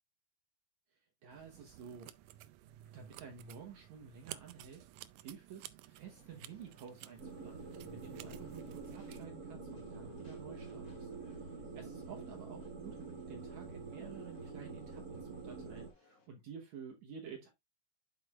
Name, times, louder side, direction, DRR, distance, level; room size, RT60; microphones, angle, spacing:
voice 1, 0.9-2.1 2.9-13.0 13.3-17.5, right 7 dB, 65° right, 2.3 m, -52 dB
sound 1, 1.3-9.3, right 14 dB, 80° right, 2.1 m, -54 dB
sound 2, 6.0-16.3, left 2 dB, 30° left, 2.4 m, -68 dB
sound 3, 7.2-15.9, right 4 dB, 40° right, 1.5 m, -46 dB
9.2 x 6.4 x 2.4 m
omnidirectional pair, 3.8 m